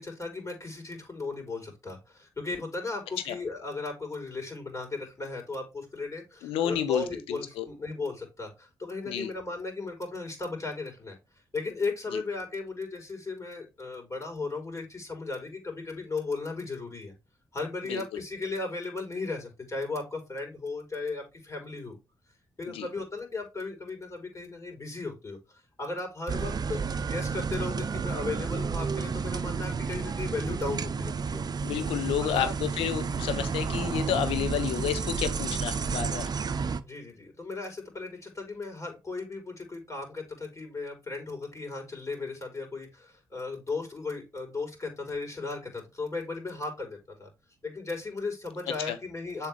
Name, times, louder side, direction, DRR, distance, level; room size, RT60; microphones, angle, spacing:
voice 1, 0.0-11.2 11.5-17.1 17.5-22.0 22.6-25.4 25.8-31.4 32.2-32.5 36.8-47.3 47.6-49.5, left 3 dB, 35° left, 4.5 m, -36 dB
voice 2, 6.4-7.7 9.1-9.3 12.1-12.2 17.9-18.0 22.7-22.9 31.6-36.3 48.7-49.0, left 10 dB, 80° left, 0.9 m, -31 dB
sound 1, 26.3-36.8, right 5 dB, 45° right, 0.6 m, -31 dB
7.3 x 4.6 x 3.4 m
hypercardioid pair, 40°, 9 cm